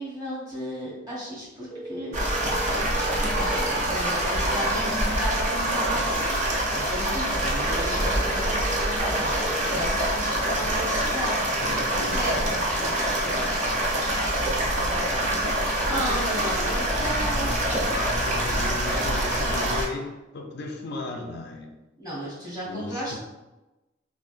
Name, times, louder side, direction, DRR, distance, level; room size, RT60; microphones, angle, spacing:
voice 1, 0.0-11.4 11.6-12.4 15.9-17.8 22.0-23.2, equal, 20° right, -7 dB, 1.2 m, -34 dB
sound 1, 1.7-3.7 7.7-9.7, right 1 dB, 5° left, 0.6 m, -37 dB
sound 2, 2.1-19.9, right 1 dB, 40° right, 0.5 m, -25 dB
voice 2, 11.3-13.8 14.8-21.7 22.7-23.2, left 3 dB, 60° left, 2 dB, 0.4 m, -37 dB
3.7 x 2.4 x 2.4 m, 1.0 s
head